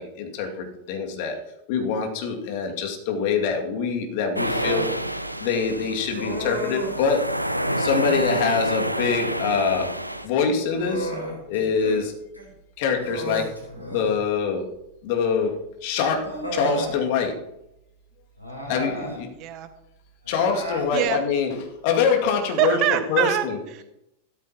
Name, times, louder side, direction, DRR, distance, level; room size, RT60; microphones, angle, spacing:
voice 1, 0.0-1.4 1.7-4.9 5.4-7.3 7.8-9.9 10.2-11.1 11.5-12.1 12.8-13.5 13.9-14.7 15.0-15.5 15.8-17.3 18.7-19.3 20.3-21.5 21.8-22.8 23.1-23.3, left 5 dB, 45° left, 3 dB, 2.2 m, -24 dB
Human voice, 4.4-4.9 6.1-7.0 7.8-8.3 10.2-12.0 12.3-12.5 13.0-14.2 15.4-15.5 16.2-17.0 18.4-19.2 20.2-20.9, equal, 90° left, 3.8 m, -33 dB
sound 1, 4.4-10.3, equal, 90° right, 0.6 m, -28 dB
voice 2, 19.0-19.7 20.9-21.2 22.6-23.8, right 12 dB, 40° right, 9 dB, 1.4 m, -25 dB
15.5 x 13.5 x 2.9 m, 0.85 s
figure-of-eight pair, 90°, 0 cm